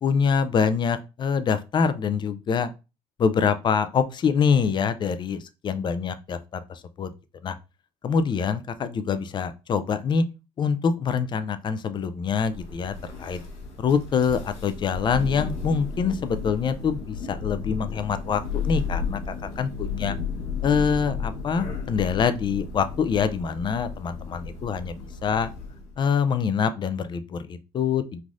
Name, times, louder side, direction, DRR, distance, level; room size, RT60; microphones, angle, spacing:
voice 1, 0.0-2.7 3.2-7.1 7.4-7.6 8.0-10.2 10.6-13.4 13.8-20.2 20.6-25.5 26.0-28.2, left 6 dB, 35° left, 11 dB, 0.4 m, -25 dB
Thunder, 12.4-26.0, left 5 dB, 60° left, 1.1 m, -33 dB
3.3 x 2.5 x 2.4 m, 0.29 s
supercardioid pair, 85°, 13 cm